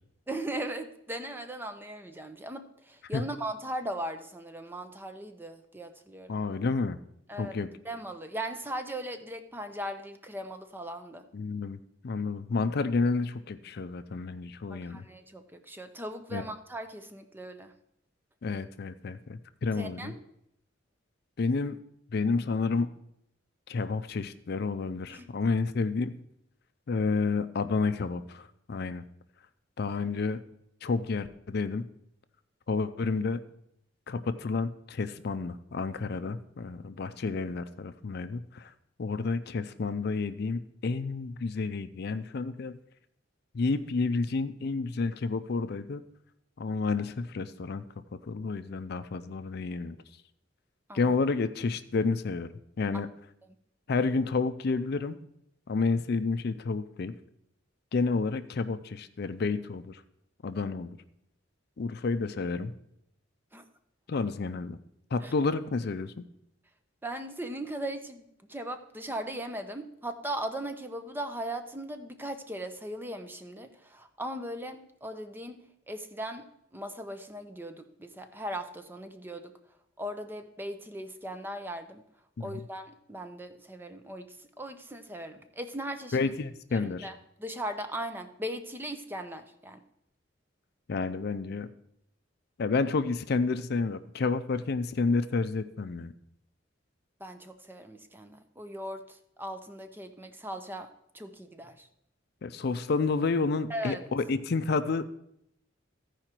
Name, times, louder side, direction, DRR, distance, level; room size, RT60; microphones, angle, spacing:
voice 1, 0.3-6.4 7.3-7.6 7.8-11.3 14.7-17.7 19.8-20.2 25.1-25.3 50.9-51.2 52.9-53.0 63.5-63.6 65.2-65.3 67.0-79.5 80.0-82.0 82.4-86.3 86.7-87.1 87.4-89.8 97.2-100.9 101.1-101.9 103.7-104.0, right 1 dB, 10° right, 8 dB, 0.6 m, -38 dB
voice 2, 6.3-7.0 7.4-7.7 11.3-11.8 12.0-15.0 16.3-16.5 18.4-20.1 21.4-21.8 22.1-22.9 23.7-26.2 26.9-29.0 29.8-30.4 30.8-31.8 32.7-33.4 34.1-38.7 39.0-42.8 43.5-46.0 46.6-47.8 48.3-50.0 50.9-52.5 52.8-53.1 53.9-55.2 55.7-57.2 57.9-60.0 60.4-61.0 61.8-62.7 64.1-64.8 65.1-66.2 82.4-82.6 86.1-87.1 90.9-91.7 92.6-96.1 102.4-105.1, left 4 dB, 55° left, 11 dB, 0.4 m, -30 dB
14.5 x 4.9 x 4.4 m, 0.77 s
head